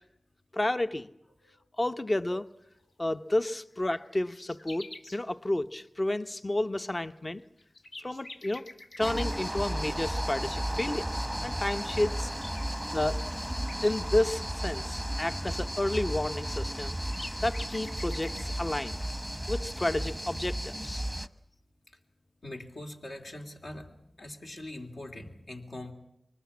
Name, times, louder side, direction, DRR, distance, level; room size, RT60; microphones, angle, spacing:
voice 1, 0.5-1.1 1.8-2.5 3.0-7.4 8.0-8.7 9.0-11.1 11.4-12.3 12.9-13.2 13.8-17.0 17.4-19.0 19.5-21.0, left 1 dB, 30° left, 11 dB, 0.8 m, -31 dB
sound 1, 3.0-3.1 3.5-3.6 3.8-5.2 7.1-7.2 7.6-9.6 11.7-11.8 12.1-14.0 16.5-16.6 16.7-18.6, left 2 dB, 85° left, 1.8 m, -48 dB
sound 2, 9.0-21.3, right 1 dB, ahead, 1.0 m, -34 dB
voice 2, 22.4-23.9 24.2-25.9, left 1 dB, 65° left, 3 dB, 3.0 m, -42 dB
24.0 x 20.0 x 8.5 m, 0.82 s
wide cardioid pair, 60°, 0 cm